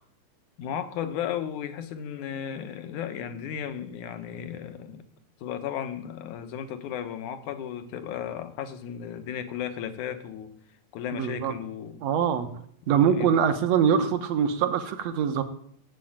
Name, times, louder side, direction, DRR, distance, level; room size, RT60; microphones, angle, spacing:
voice 1, 0.6-5.0 5.4-10.5 10.9-12.0 12.8-13.4 13.7-14.1, left 9 dB, 75° left, 10 dB, 2.6 m, -35 dB
voice 2, 11.1-11.5 12.0-12.5 12.9-15.4, right 8 dB, 65° right, 9 dB, 2.3 m, -23 dB
16.0 x 8.4 x 8.9 m, 0.66 s
omnidirectional pair, 3.7 m